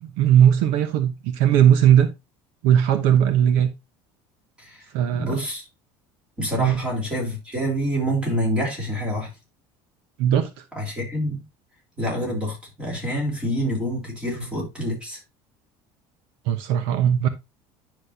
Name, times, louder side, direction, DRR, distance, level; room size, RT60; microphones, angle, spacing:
voice 1, 0.0-2.1 2.6-3.7 4.9-5.3 6.6-6.8 10.2-10.6 16.5-17.3, right 10 dB, 65° right, 0.9 m, -18 dB
voice 2, 5.1-5.6 6.4-9.3 10.7-11.4 12.0-15.2, equal, 10° right, 3.4 m, -27 dB
10.0 x 6.2 x 2.7 m
cardioid pair, 180°, 11 cm